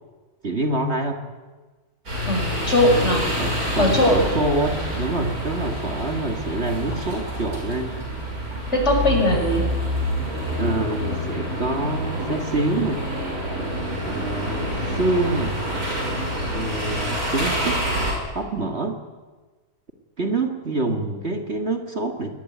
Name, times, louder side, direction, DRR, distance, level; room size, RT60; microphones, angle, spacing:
voice 1, 0.4-1.2 3.4-8.0 10.5-13.1 14.0-15.6 16.4-17.9 18.3-19.0 20.2-22.3, right 2 dB, 45° right, 4 dB, 2.3 m, -26 dB
sound 1, 2.1-18.1, equal, 75° right, 7.1 m, -27 dB
voice 2, 2.3-3.3 3.8-4.4 8.7-9.6, left 1 dB, 50° left, 2 dB, 6.4 m, -20 dB
23.5 x 19.5 x 9.5 m, 1.3 s
omnidirectional pair, 1.6 m